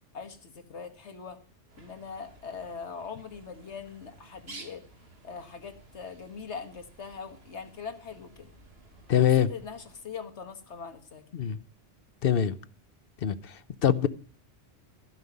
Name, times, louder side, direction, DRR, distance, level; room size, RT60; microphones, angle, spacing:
voice 1, 0.1-1.4 1.8-4.8 5.2-8.5 9.2-11.2, left 6 dB, 80° left, 1.8 m, -41 dB
Bird, 1.7-10.0, right 3 dB, 60° right, 2.0 m, -53 dB
voice 2, 9.1-9.5 11.3-11.6 12.2-12.5 13.2-14.1, left 9 dB, 60° left, 0.9 m, -24 dB
15.0 x 5.5 x 9.3 m
omnidirectional pair, 1.2 m